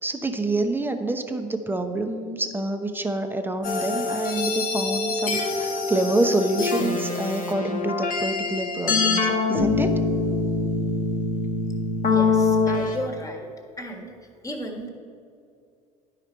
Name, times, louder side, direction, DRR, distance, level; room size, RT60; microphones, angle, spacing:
voice 1, 0.0-10.0, right 2 dB, 10° right, 6 dB, 0.8 m, -27 dB
sound 1, 3.6-13.0, left 4 dB, 50° left, 1.2 m, -24 dB
voice 2, 12.1-13.5 13.8-14.1 14.4-14.9, equal, 20° left, 2 dB, 1.5 m, -34 dB
11.0 x 4.9 x 4.5 m, 2.5 s
hypercardioid pair, 75°, 18 cm